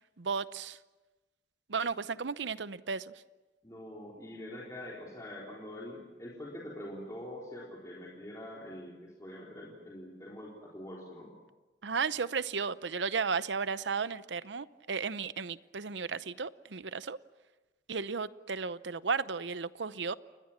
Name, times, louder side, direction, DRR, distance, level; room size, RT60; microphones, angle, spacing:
voice 1, 0.2-0.8 1.7-3.1 11.8-17.2 17.9-20.1, right 5 dB, 85° right, 0.8 m, -34 dB
voice 2, 3.6-11.3, left 1 dB, 20° left, 3.9 m, -44 dB
30.0 x 21.5 x 7.4 m
head